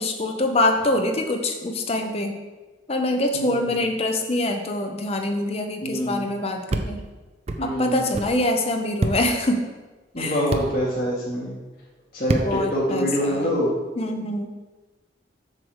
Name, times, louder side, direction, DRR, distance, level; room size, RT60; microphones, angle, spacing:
voice 1, 0.0-2.4 2.9-7.0 7.6-9.6 10.2-10.4 12.4-13.6 14.0-14.5, left 1 dB, 30° left, 4 dB, 0.7 m, -25 dB
voice 2, 3.3-3.8 5.8-6.3 7.6-8.0 10.1-11.5 12.1-13.7, equal, 50° left, -8 dB, 2.3 m, -25 dB
sound 1, 6.7-6.9 7.5-7.6 8.1-8.3 9.0-9.2 10.5-10.7 12.3-12.5, right 2 dB, 35° right, 0.4 m, -24 dB
7.5 x 3.2 x 6.3 m, 1.2 s
head